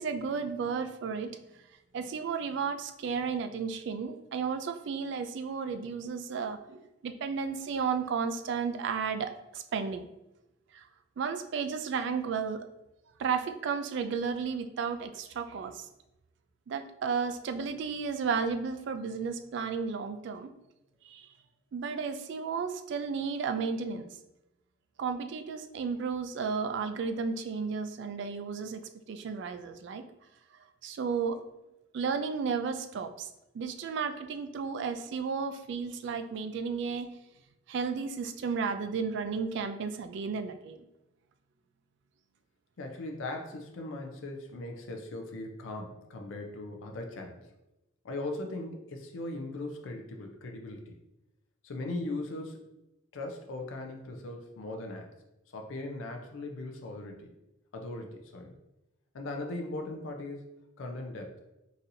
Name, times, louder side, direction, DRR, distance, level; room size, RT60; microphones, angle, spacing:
voice 1, 0.0-1.3 1.9-10.1 10.7-10.8 11.2-12.6 13.2-15.9 16.7-20.5 21.0-21.3 21.7-24.1 25.0-28.8 29.1-30.0 30.8-31.4 31.9-33.3 33.5-37.1 37.7-40.9, right 5 dB, 60° right, 9 dB, 0.3 m, -33 dB
voice 2, 42.8-47.5 48.0-50.9 51.6-52.6 53.1-55.1 55.5-57.3 57.7-58.6 59.1-60.5 60.8-61.4, left 2 dB, 75° left, 2 dB, 0.5 m, -39 dB
4.0 x 2.7 x 2.6 m, 0.93 s
head